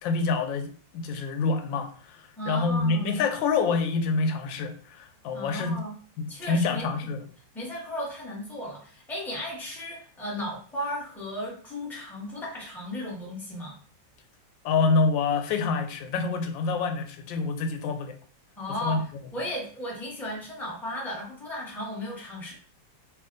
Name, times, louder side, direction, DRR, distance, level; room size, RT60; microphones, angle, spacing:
voice 1, 0.0-0.7 0.9-5.7 6.2-7.2 14.6-18.1 18.8-19.0, left 4 dB, 90° left, 6 dB, 1.4 m, -27 dB
voice 2, 2.4-3.2 5.3-6.0 6.3-7.1 7.5-13.8 18.6-22.5, left 1 dB, ahead, -4 dB, 1.0 m, -35 dB
3.4 x 2.7 x 3.8 m, 0.43 s
omnidirectional pair, 2.0 m